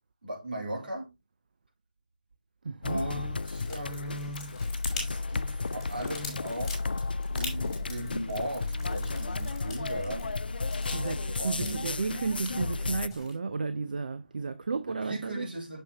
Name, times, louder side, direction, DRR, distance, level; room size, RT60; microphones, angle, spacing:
voice 1, 0.2-1.1 2.9-4.7 4.9-6.8 7.3-10.3 11.4-11.9 14.9-15.8, right 1 dB, 80° right, 3.6 m, -37 dB
voice 2, 2.6-3.0 10.9-15.5, right 4 dB, 60° right, 0.5 m, -33 dB
sound 1, 2.8-13.1, left 3 dB, 80° left, 0.3 m, -33 dB
sound 2, 3.4-13.3, left 3 dB, 5° left, 2.7 m, -45 dB
Buzz, 7.0-13.2, equal, 40° right, 1.9 m, -47 dB
6.7 x 5.6 x 2.9 m
figure-of-eight pair, 160°, 5 cm